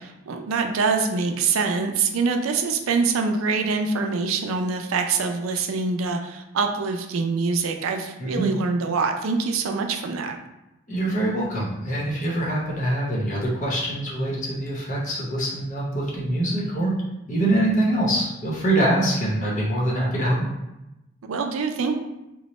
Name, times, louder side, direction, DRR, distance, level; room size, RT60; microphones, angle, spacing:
voice 1, 0.0-10.4 21.2-21.9, right 4 dB, 90° right, 5 dB, 0.4 m, -24 dB
voice 2, 8.2-8.5 10.9-16.9 17.3-20.4, right 1 dB, 35° left, -4 dB, 0.7 m, -24 dB
3.0 x 2.1 x 4.1 m, 0.93 s
head